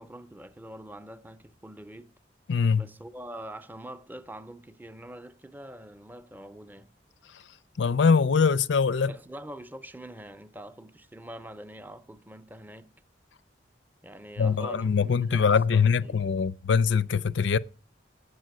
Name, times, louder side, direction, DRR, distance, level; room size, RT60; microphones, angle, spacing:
voice 1, 0.0-2.1 2.8-6.9 8.7-8.8 9.1-12.9 14.0-16.3, right 1 dB, 10° right, 0.6 m, -44 dB
voice 2, 2.5-2.9 7.8-9.1 14.4-17.6, left 5 dB, 85° left, 0.5 m, -23 dB
8.7 x 7.5 x 7.7 m
head